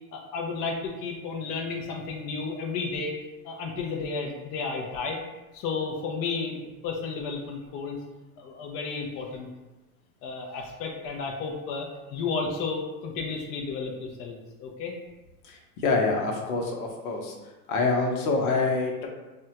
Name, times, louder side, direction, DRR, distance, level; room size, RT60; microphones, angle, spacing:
voice 1, 0.1-3.1 3.4-5.2 5.5-8.0 8.4-9.5 10.2-14.9, left 4 dB, 35° left, 1 dB, 0.4 m, -32 dB
voice 2, 15.8-17.3 17.7-19.1, left 3 dB, 70° left, 1 dB, 0.9 m, -25 dB
3.5 x 2.1 x 2.8 m, 1.1 s
hypercardioid pair, 110°, 45 cm